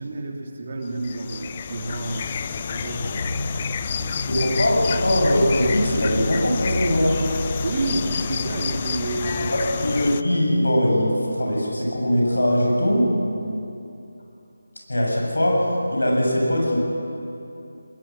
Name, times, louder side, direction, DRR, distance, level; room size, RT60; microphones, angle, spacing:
voice 1, 0.0-3.3 3.8-4.2 7.6-9.9 13.4-13.7, right 2 dB, 40° right, 1 dB, 3.1 m, -30 dB
sound 1, 0.9-10.2, left 7 dB, 30° left, 0.6 m, -30 dB
sound 2, 2.9-10.1, left 2 dB, 55° left, 5.8 m, -32 dB
voice 2, 4.0-7.2 9.5-13.1 14.9-16.8, equal, 75° left, -1 dB, 7.7 m, -21 dB
20.5 x 20.5 x 7.6 m, 2.7 s
figure-of-eight pair, 160°, 0 cm